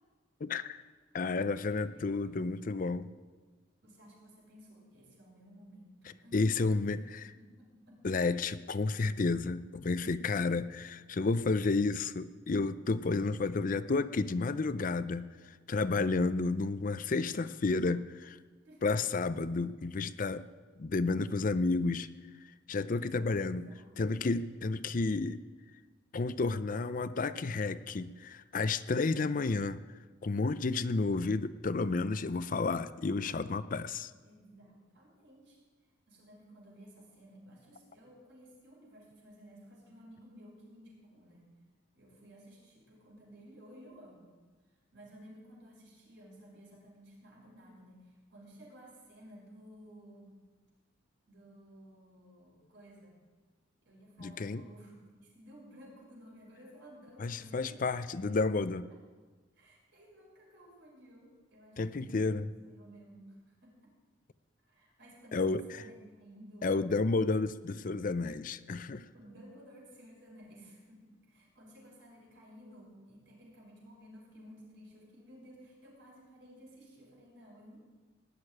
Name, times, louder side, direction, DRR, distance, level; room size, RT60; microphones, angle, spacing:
voice 1, 0.4-0.8 1.1-3.1 6.3-7.2 8.0-18.4 18.8-20.4 20.8-22.1 22.7-23.7 24.0-25.4 26.1-29.8 30.2-34.1 54.2-54.6 57.2-58.9 61.8-62.5 65.3-65.8 66.6-69.1, left 3 dB, 45° left, 14 dB, 0.5 m, -31 dB
voice 2, 1.4-2.4 3.8-8.0 10.8-10.9 18.6-18.9 23.2-23.9 34.2-35.6 36.1-41.5 41.9-44.3 44.9-50.4 51.3-53.2 53.8-58.4 58.9-59.0 59.6-63.7 64.6-66.8 69.1-77.8, equal, 65° right, -3 dB, 6.0 m, -55 dB
17.5 x 6.7 x 9.9 m, 1.4 s
head